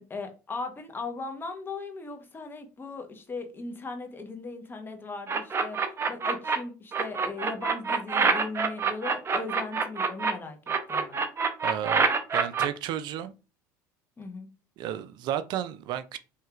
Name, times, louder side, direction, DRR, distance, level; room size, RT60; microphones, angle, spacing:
voice 1, 0.0-5.8 6.1-11.2 14.2-14.5, left 3 dB, 25° left, 1.1 m, -38 dB
sound 1, 5.3-6.6 6.9-10.3 10.7-12.7, right 5 dB, 30° right, 0.7 m, -25 dB
voice 2, 11.6-12.1 12.3-13.3 14.8-16.2, right 10 dB, 60° right, 0.4 m, -32 dB
4.4 x 3.1 x 2.4 m
supercardioid pair, 90°, 8 cm